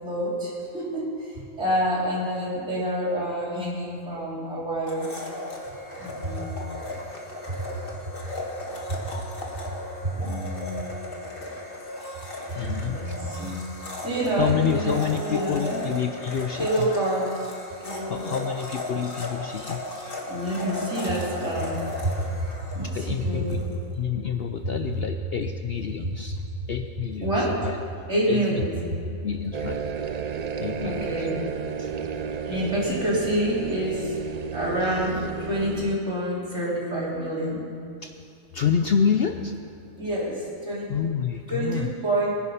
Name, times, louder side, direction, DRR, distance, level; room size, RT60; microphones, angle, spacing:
voice 1, 0.0-5.1 6.0-6.7 9.0-9.1 10.0-11.0 12.6-13.7 14.0-15.8 16.6-17.4 17.8-18.4 20.3-22.1 22.7-23.7 27.2-27.6 28.1-28.7 30.8-31.4 32.5-34.2 34.5-37.7 40.0-40.9 41.5-42.3, right 1 dB, 55° right, -6 dB, 3.8 m, -27 dB
Domestic sounds home sounds, 4.9-23.7, left 1 dB, 40° left, 1.8 m, -36 dB
voice 2, 12.5-13.2 14.4-16.9 18.0-19.8 22.9-23.6 24.0-27.8 28.3-28.6 29.2-29.8 30.6-31.3 31.8-32.5 38.0-38.2 38.5-39.6 40.9-41.9, left 7 dB, 60° left, 6 dB, 0.7 m, -28 dB
sound 1, 29.5-36.0, right 7 dB, 85° right, 0.3 m, -32 dB
21.5 x 9.9 x 5.6 m, 2.5 s
omnidirectional pair, 1.4 m